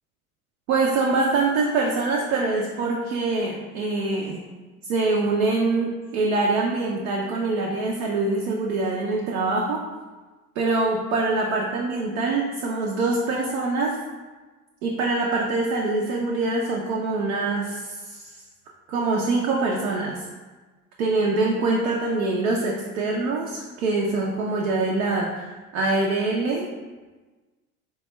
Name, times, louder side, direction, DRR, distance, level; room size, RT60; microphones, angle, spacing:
voice 1, 0.7-4.4 4.9-9.8 10.6-14.0 14.8-18.3 18.9-20.2 21.0-25.4 25.7-26.6, right 3 dB, 65° right, -2 dB, 0.6 m, -24 dB
4.1 x 2.2 x 3.0 m, 1.3 s
figure-of-eight pair, 70°, 44 cm